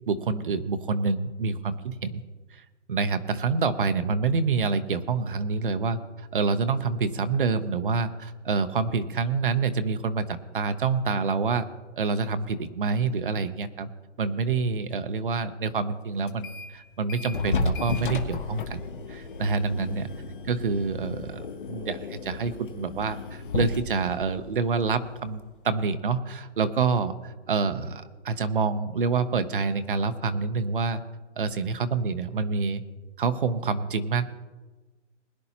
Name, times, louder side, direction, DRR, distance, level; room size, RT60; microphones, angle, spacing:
voice 1, 0.1-2.2 2.5-11.7 12.0-13.9 14.2-18.8 19.1-20.1 20.5-31.0 31.4-32.8 33.2-34.3, right 4 dB, 45° right, 10 dB, 0.8 m, -27 dB
sound 1, 16.3-16.8 17.1-25.6, left 3 dB, 45° left, 1.1 m, -33 dB
21.5 x 10.5 x 2.9 m, 1.2 s
hypercardioid pair, 180°, 36 cm